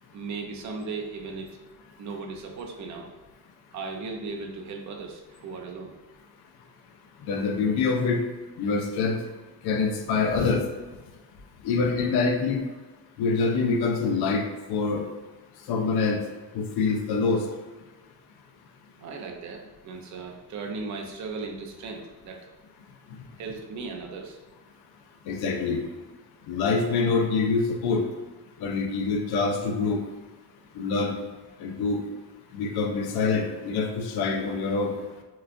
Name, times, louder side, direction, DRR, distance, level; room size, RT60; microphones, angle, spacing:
voice 1, 0.1-1.6 2.0-3.1 3.7-5.9 19.0-22.5 23.4-24.4, right 4 dB, 45° right, 3 dB, 0.6 m, -37 dB
voice 2, 7.2-8.2 8.6-9.2 9.6-10.6 11.6-12.6 13.2-15.0 15.7-16.2 16.5-17.4 25.3-25.8 26.5-28.0 28.6-30.0 30.8-31.1 31.6-32.0 32.5-34.9, left 4 dB, 70° left, 4 dB, 0.7 m, -25 dB
5.9 x 2.3 x 2.5 m, 1.2 s
cardioid pair, 135°, 41 cm